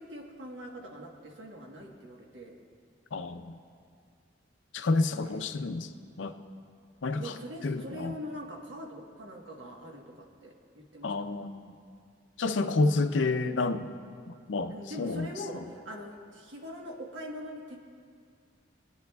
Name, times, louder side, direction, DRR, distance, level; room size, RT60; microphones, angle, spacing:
voice 1, 0.0-2.5 5.2-5.4 7.2-11.3 14.7-17.8, equal, 90° right, 1 dB, 1.3 m, -43 dB
voice 2, 3.1-3.5 4.7-5.9 6.2-6.4 7.0-7.3 7.6-8.1 11.0-11.7 12.4-13.9 14.5-15.3, left 3 dB, 85° left, 8 dB, 0.5 m, -29 dB
22.5 x 8.6 x 2.3 m, 2.2 s
head